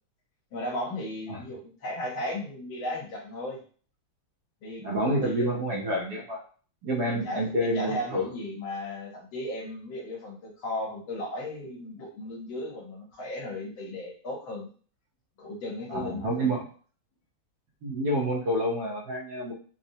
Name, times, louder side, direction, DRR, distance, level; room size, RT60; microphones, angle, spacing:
voice 1, 0.5-3.6 4.6-5.5 7.1-14.7 15.4-16.5, left 1 dB, 80° left, -2 dB, 1.8 m, -36 dB
voice 2, 4.8-6.4 6.8-8.3 15.9-16.7 17.8-19.5, equal, 60° right, -2 dB, 1.2 m, -28 dB
4.1 x 2.1 x 2.7 m, 0.41 s
omnidirectional pair, 2.2 m